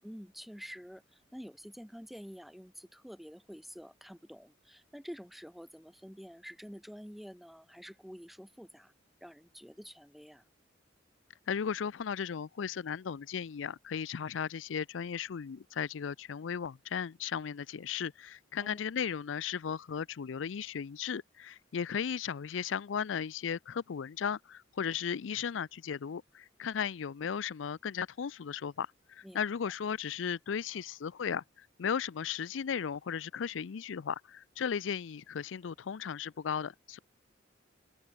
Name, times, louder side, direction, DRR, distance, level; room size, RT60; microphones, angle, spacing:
voice 1, 0.0-8.9 9.2-10.4 18.6-18.8 29.2-29.7, equal, ahead, 5.5 m, -48 dB
voice 2, 11.5-37.0, left 7 dB, 90° left, 0.5 m, -36 dB
open air
head